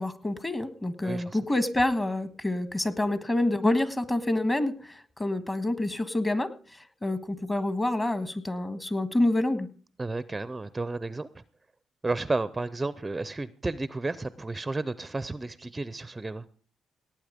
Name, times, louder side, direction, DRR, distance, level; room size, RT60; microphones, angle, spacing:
voice 1, 0.0-6.5 7.0-9.7, left 1 dB, 20° left, 12 dB, 1.5 m, -27 dB
voice 2, 1.0-1.4 10.0-11.4 12.0-16.5, right 3 dB, 20° right, 16 dB, 0.5 m, -32 dB
18.5 x 8.8 x 5.1 m, 0.41 s
cardioid pair, 90°, 0 cm